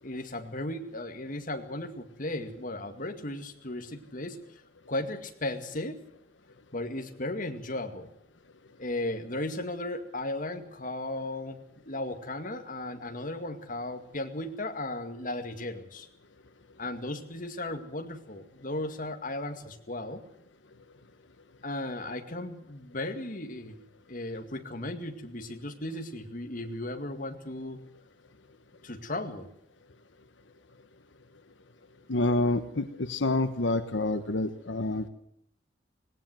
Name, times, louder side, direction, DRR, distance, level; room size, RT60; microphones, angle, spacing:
voice 1, 0.0-4.4 4.9-6.0 6.7-8.1 8.8-16.1 16.8-20.2 21.6-23.8 24.1-27.8 28.8-29.5, left 1 dB, 45° left, 5 dB, 2.1 m, -36 dB
voice 2, 32.1-35.1, left 2 dB, 85° left, 9 dB, 1.2 m, -28 dB
18.5 x 18.0 x 7.8 m, 0.69 s
head